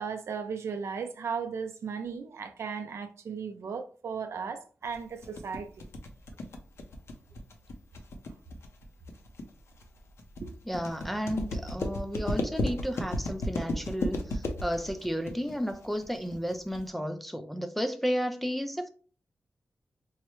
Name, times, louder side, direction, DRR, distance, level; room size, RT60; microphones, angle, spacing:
voice 1, 0.0-5.7 10.4-10.5, right 6 dB, 75° right, 0.5 m, -36 dB
sound 1, 4.9-16.9, left 1 dB, 70° left, 0.6 m, -34 dB
voice 2, 10.7-18.9, equal, 5° left, 0.4 m, -33 dB
4.6 x 2.1 x 3.0 m
wide cardioid pair, 125°, 5 cm